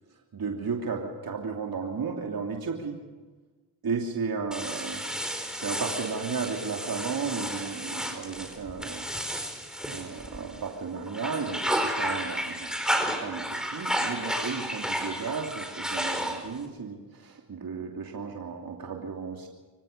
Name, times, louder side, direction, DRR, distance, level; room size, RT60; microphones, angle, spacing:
voice 1, 0.3-3.0 3.8-5.0 5.5-9.1 9.9-19.5, right 5 dB, 55° right, 1 dB, 2.9 m, -34 dB
sound 1, 4.5-10.7 11.1-16.6, equal, ahead, 4.7 m, -32 dB
25.5 x 16.5 x 6.8 m, 1.3 s
supercardioid pair, 50°, 43 cm